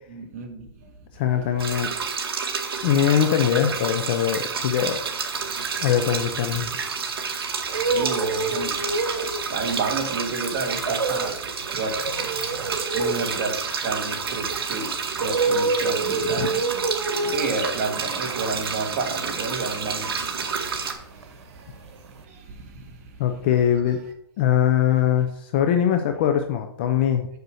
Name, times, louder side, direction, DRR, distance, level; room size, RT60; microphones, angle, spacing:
voice 1, 0.1-0.7 1.3-1.5 1.8-1.9 7.8-8.9 9.5-12.0 12.9-16.8 17.2-20.5 20.9-21.0 22.3-22.4 23.5-23.9, right 4 dB, 30° right, 1.7 m, -31 dB
voice 2, 1.1-1.9 2.8-5.0 5.8-6.7 16.2-16.5 23.2-24.0 24.4-27.3, left 9 dB, 20° left, 0.5 m, -22 dB
sound 1, 1.6-20.9, right 5 dB, 60° right, 2.0 m, -30 dB
sound 2, 4.0-7.1 7.5-20.9 21.2-22.2, right 3 dB, 90° right, 1.5 m, -29 dB
6.9 x 6.6 x 6.3 m
hypercardioid pair, 170°, 14 cm